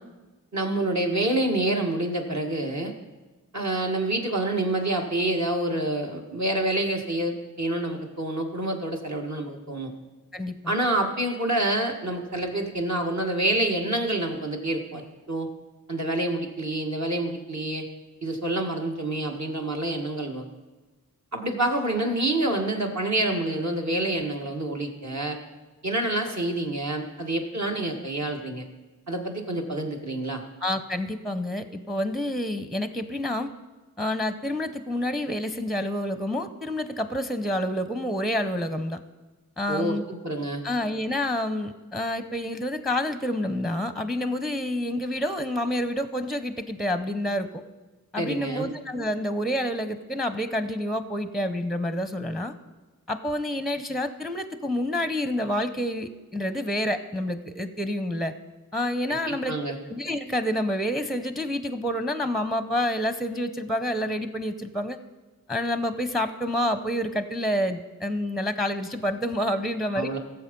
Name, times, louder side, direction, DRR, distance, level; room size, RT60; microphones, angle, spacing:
voice 1, 0.5-2.9 3.5-9.9 10.7-15.0 15.3-15.5 15.9-17.8 18.2-20.4 21.3-25.4 25.8-28.7 29.1-30.4 39.7-40.6 48.2-48.7 59.1-59.8 70.0-70.2, right 1 dB, 55° right, 1 dB, 1.8 m, -27 dB
voice 2, 10.3-10.7 30.6-33.5 34.0-39.0 39.6-40.0 40.6-47.5 48.1-52.5 53.1-58.3 58.7-59.5 59.8-65.0 65.5-70.1, left 1 dB, ahead, 11 dB, 0.7 m, -28 dB
16.0 x 7.1 x 5.3 m, 1.2 s
wide cardioid pair, 40°, 34 cm